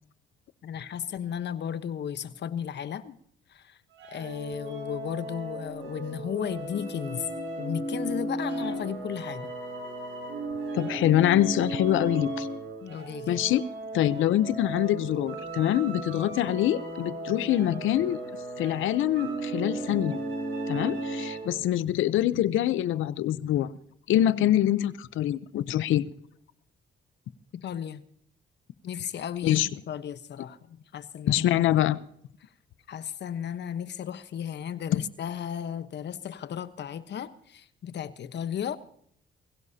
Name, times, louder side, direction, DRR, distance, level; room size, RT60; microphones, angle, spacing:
voice 1, 0.6-3.2 3.5-3.8 4.1-7.3 7.6-9.5 12.8-13.4 21.4-21.6 27.5-28.0 28.8-31.4 32.4-32.5 32.9-38.8, left 9 dB, 60° left, 1.1 m, -35 dB
sound 1, 3.9-21.6, right 1 dB, 85° right, 7.1 m, -35 dB
voice 2, 10.7-12.5 13.3-13.6 13.9-18.2 18.6-20.2 20.7-23.7 24.1-26.0 29.4-29.7 31.3-32.0 34.9-35.0, left 12 dB, 80° left, 0.8 m, -25 dB
22.0 x 16.5 x 2.8 m
cardioid pair, 90°, 20 cm